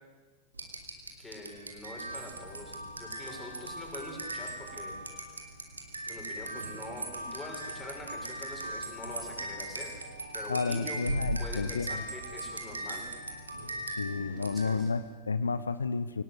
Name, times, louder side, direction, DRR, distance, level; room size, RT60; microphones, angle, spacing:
sound 1, 0.5-15.0, right 1 dB, 80° right, 2.8 m, -39 dB
voice 1, 1.2-5.3 6.1-10.1 10.3-11.0 11.4-13.1 14.4-14.9, left 1 dB, 10° left, 1 dB, 6.3 m, -45 dB
voice 2, 10.5-12.0 14.0-16.2, left 4 dB, 75° left, 14 dB, 0.7 m, -31 dB
23.5 x 18.5 x 8.2 m, 1.4 s
figure-of-eight pair, 90°, 0 cm